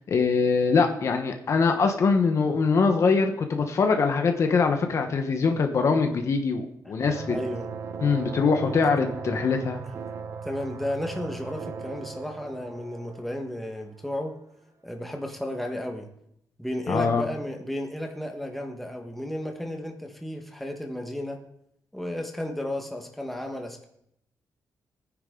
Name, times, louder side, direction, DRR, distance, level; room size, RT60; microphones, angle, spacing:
voice 1, 0.1-7.4 8.0-9.8 16.9-17.2, left 4 dB, 50° left, 5 dB, 1.1 m, -23 dB
sound 1, 7.0-14.2, right 6 dB, 50° right, 0.9 m, -38 dB
voice 2, 7.3-7.7 10.4-14.3 14.8-16.1 16.6-21.4 21.9-23.9, left 1 dB, ahead, 3 dB, 1.5 m, -33 dB
18.5 x 9.7 x 3.8 m, 0.75 s
wide cardioid pair, 155°, 6 cm